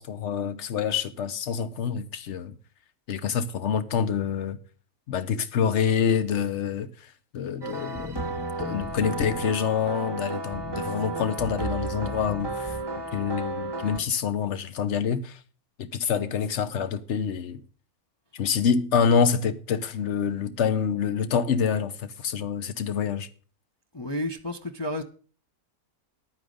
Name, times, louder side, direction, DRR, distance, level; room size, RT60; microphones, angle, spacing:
voice 1, 0.0-2.5 3.1-4.6 5.1-6.9 7.3-12.7 13.1-15.4 15.8-17.6 18.3-23.3, left 7 dB, 55° left, 1.2 m, -26 dB
sound 1, 7.6-14.0, right 2 dB, 20° right, 1.2 m, -33 dB
voice 2, 23.9-25.0, left 1 dB, 30° left, 0.5 m, -31 dB
10.5 x 9.1 x 6.5 m
omnidirectional pair, 1.6 m